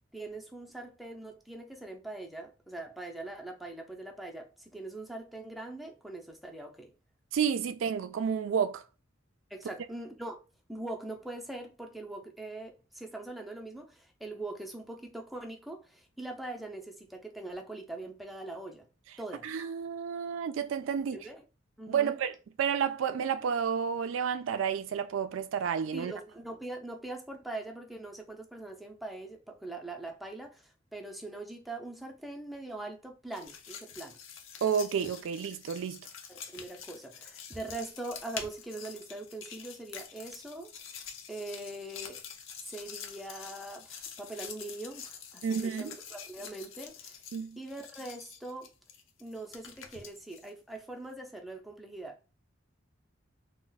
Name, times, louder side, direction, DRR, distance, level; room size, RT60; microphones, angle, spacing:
voice 1, 0.1-6.9 9.5-10.4 10.7-18.9 19.2-19.5 21.1-21.4 21.8-22.2 25.9-34.2 36.3-40.7 41.3-42.2 42.7-47.2 47.6-48.7 49.2-52.2, right 2 dB, ahead, 0.5 m, -42 dB
voice 2, 7.3-8.8 19.4-21.2 21.9-26.1 34.6-36.1 45.4-46.0 47.3-47.6, right 7 dB, 75° right, 0.3 m, -31 dB
sound 1, 33.3-50.5, left 7 dB, 80° left, 0.6 m, -46 dB
2.3 x 2.1 x 3.9 m
head